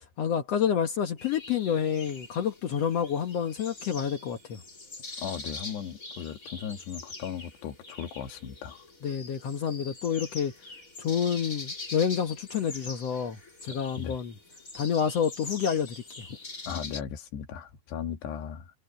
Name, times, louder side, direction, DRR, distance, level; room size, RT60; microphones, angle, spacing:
voice 1, 0.2-4.6 9.0-10.5 11.0-14.3 14.7-16.3, left 8 dB, 85° left, 1.4 m, -28 dB
sound 1, 1.2-17.0, left 3 dB, 20° left, 3.2 m, -44 dB
voice 2, 5.2-8.9 14.0-14.2 16.7-18.7, left 8 dB, 70° left, 4.1 m, -37 dB
omnidirectional pair, 5.2 m